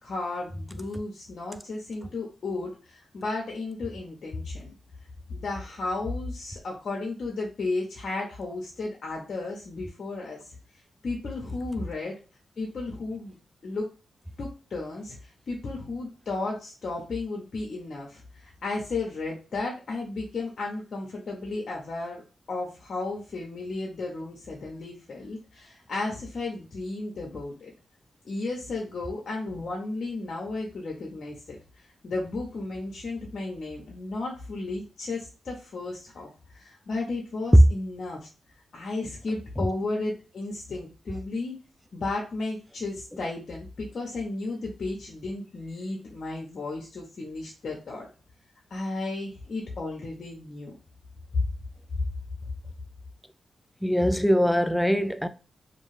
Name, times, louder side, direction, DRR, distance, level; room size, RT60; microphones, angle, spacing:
voice 1, 0.0-4.7 5.3-10.6 11.0-12.1 12.6-13.4 13.6-13.9 14.4-22.2 22.5-27.7 28.2-31.6 32.0-38.3 38.7-41.5 41.9-48.1 48.7-50.7, left 3 dB, 60° left, 0.6 m, -34 dB
voice 2, 53.8-55.3, equal, 5° left, 0.3 m, -23 dB
2.5 x 2.2 x 3.2 m
cardioid pair, 55°, 0 cm